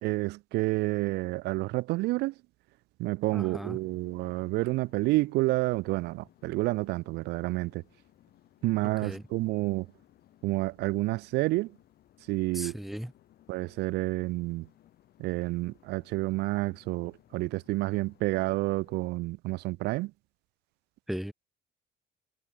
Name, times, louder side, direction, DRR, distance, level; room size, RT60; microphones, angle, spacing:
voice 1, 0.0-2.3 3.0-7.8 8.6-9.9 10.4-11.7 12.3-12.8 13.5-14.7 15.2-20.1, right 20 dB, 80° right, 0.4 m, -29 dB
sound 1, 3.3-19.1, left 13 dB, 65° left, 5.9 m, -62 dB
voice 2, 3.3-3.8 9.0-9.2 12.5-13.1 21.1-21.3, equal, ahead, 0.6 m, -36 dB
cardioid pair, 110°, 17 cm